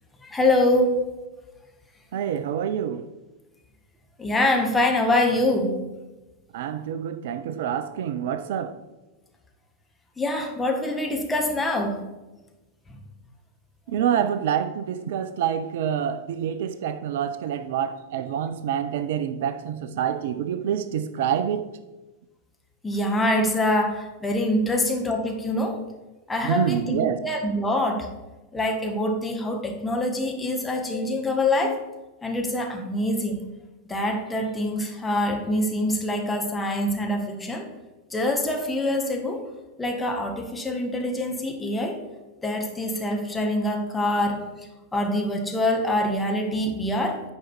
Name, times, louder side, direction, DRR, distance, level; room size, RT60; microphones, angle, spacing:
voice 1, 0.2-1.0 4.2-5.8 10.2-12.0 22.8-25.8 26.3-28.1 28.5-31.8 32.2-33.4 33.9-37.7 38.1-39.5 39.8-42.0 42.4-47.2, left 1 dB, 10° left, 1.3 m, -25 dB
voice 2, 2.1-3.0 6.5-8.7 13.9-21.7 26.5-27.2, right 9 dB, 55° right, 0.4 m, -27 dB
9.3 x 4.9 x 4.5 m
figure-of-eight pair, 90°, 0 cm